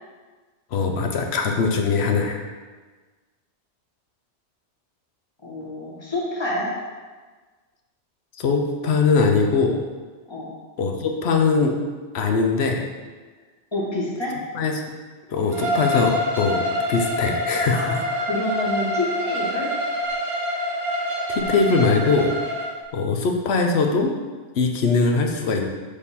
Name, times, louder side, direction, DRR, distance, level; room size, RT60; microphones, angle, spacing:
voice 1, 0.7-2.4 8.4-9.8 10.8-11.8 12.1-12.9 14.5-14.7 15.3-17.8 21.3-22.3 22.9-24.1 24.5-25.6, left 4 dB, 70° left, 3 dB, 0.9 m, -21 dB
voice 2, 5.4-6.7 10.3-10.5 13.7-14.4 17.7-19.7, left 1 dB, 25° left, -5 dB, 1.3 m, -28 dB
Bowed string instrument, 15.5-22.7, left 1 dB, 30° right, 0.9 m, -26 dB
6.6 x 3.6 x 4.2 m, 1.4 s
omnidirectional pair, 1.2 m